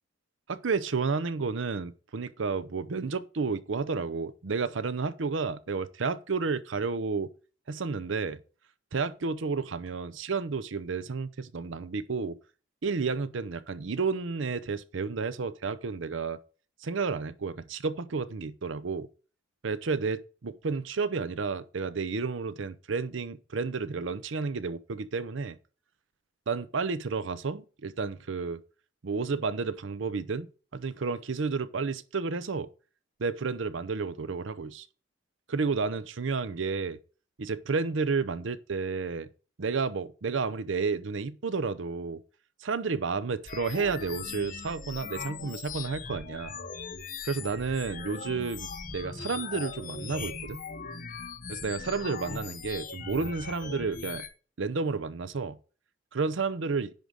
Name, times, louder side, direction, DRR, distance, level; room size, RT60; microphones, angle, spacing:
voice 1, 0.5-7.3 7.7-8.4 8.9-12.4 12.8-16.4 16.8-19.1 19.6-25.6 26.5-28.6 29.0-30.5 30.7-32.7 33.2-34.9 35.5-37.0 37.4-39.3 39.6-42.2 42.6-46.5 47.2-50.6 51.5-54.3 54.6-55.6 56.1-56.9, right 4 dB, 70° right, 0.6 m, -31 dB
sound 1, 43.5-54.3, left 5 dB, 40° left, 1.1 m, -40 dB
10.5 x 3.9 x 6.2 m
head